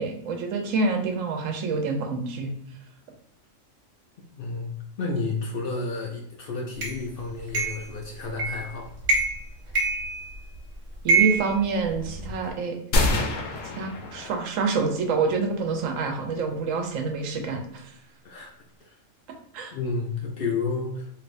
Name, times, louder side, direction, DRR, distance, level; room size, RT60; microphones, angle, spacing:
voice 1, 0.0-2.5 11.0-12.8 13.8-17.9 19.5-19.7, right 4 dB, 90° right, 3 dB, 1.0 m, -27 dB
voice 2, 4.4-4.7 5.0-8.9 18.2-18.5 18.9-19.0 19.7-21.1, left 4 dB, 60° left, 0 dB, 0.6 m, -31 dB
sound 1, 6.8-6.9 7.5-7.9 8.4-8.7 9.0-9.4 9.8-10.6 11.1-12.3, right 4 dB, 65° right, 1.3 m, -25 dB
sound 2, 12.9-14.8, left 1 dB, 85° left, 1.0 m, -26 dB
3.4 x 2.6 x 2.6 m, 0.72 s
omnidirectional pair, 1.3 m